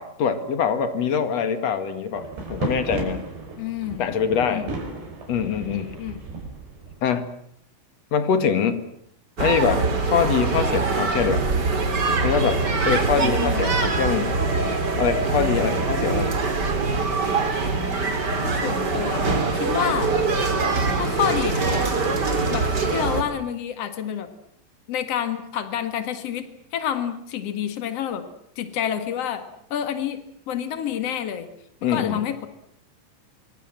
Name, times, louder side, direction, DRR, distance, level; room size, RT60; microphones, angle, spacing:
voice 1, 0.0-3.3 4.0-4.7 5.3-6.0 7.0-7.3 8.1-8.9 9.4-11.5 12.2-14.4 15.0-16.3 31.8-32.3, left 6 dB, 55° left, 10 dB, 2.0 m, -24 dB
sound 1, 2.1-7.1, right 3 dB, 55° right, 7.3 m, -34 dB
voice 2, 3.6-4.1 4.5-4.7 6.0-6.2 13.2-13.7 18.4-20.1 21.0-21.6 22.5-24.3 24.9-26.5 26.7-28.2 28.5-29.4 29.7-30.2 30.5-31.5 31.8-32.5, left 9 dB, 75° left, 9 dB, 1.4 m, -28 dB
sound 2, 9.4-23.2, right 3 dB, 30° right, 2.2 m, -23 dB
26.0 x 24.0 x 7.6 m, 0.70 s
omnidirectional pair, 5.8 m